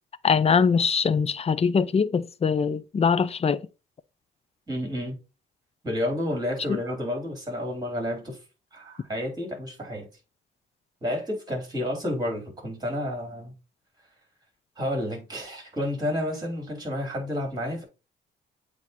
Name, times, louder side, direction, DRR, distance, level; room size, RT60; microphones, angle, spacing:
voice 1, 0.2-3.6 6.7-6.8, left 6 dB, 30° left, 0.5 m, -22 dB
voice 2, 4.7-5.2 5.8-8.4 8.7-10.1 11.0-13.5 14.8-17.8, left 1 dB, 20° right, 4.2 m, -30 dB
8.1 x 2.8 x 4.6 m
cardioid pair, 90°, 20 cm